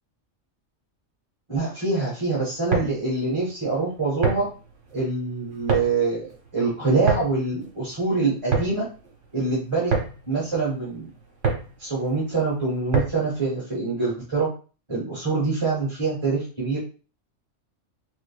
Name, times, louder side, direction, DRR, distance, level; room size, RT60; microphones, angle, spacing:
voice 1, 1.5-4.5 4.9-6.3 6.5-8.9 9.3-9.9 10.3-11.1 11.8-14.5 14.9-16.8, right 3 dB, 20° right, -7 dB, 1.3 m, -25 dB
sound 1, 2.5-13.4, right 4 dB, 60° right, 1.3 m, -29 dB
3.6 x 3.5 x 2.2 m, 0.37 s
omnidirectional pair, 1.4 m